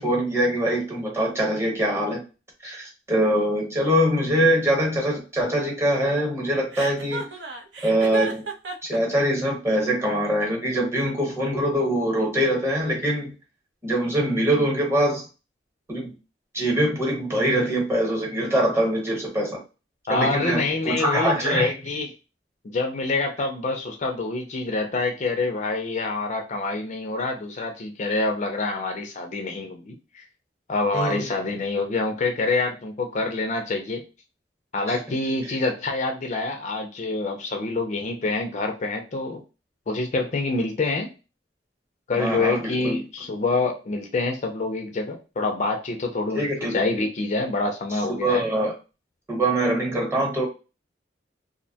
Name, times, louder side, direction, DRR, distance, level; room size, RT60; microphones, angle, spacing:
voice 1, 0.0-2.2 2.6-7.3 7.8-8.4 8.8-13.3 13.8-15.3 15.9-16.1 16.5-19.6 20.1-21.7 30.9-31.2 34.9-35.0 35.5-35.6 42.1-43.0 46.3-46.7 48.1-48.7 49.3-50.4, right 1 dB, 15° right, -1 dB, 1.0 m, -23 dB
Chuckle chortle, 6.7-9.0, right 4 dB, 75° right, 0.6 m, -32 dB
voice 2, 20.1-22.1 22.6-30.2 30.7-34.0 34.7-39.4 39.9-41.1 42.1-46.4 46.7-48.5, left 3 dB, 40° left, 3 dB, 0.4 m, -26 dB
2.6 x 2.1 x 2.7 m, 0.31 s
head